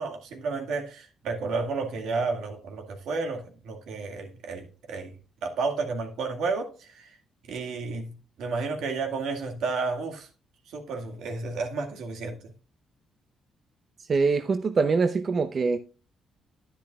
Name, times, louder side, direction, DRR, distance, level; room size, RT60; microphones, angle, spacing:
voice 1, 0.0-5.1 5.4-7.1 7.5-10.3 10.7-12.5, right 4 dB, 80° right, 1.9 m, -32 dB
voice 2, 14.1-15.8, right 4 dB, 45° right, 0.6 m, -24 dB
10.0 x 10.0 x 2.4 m
cardioid pair, 90°, 0 cm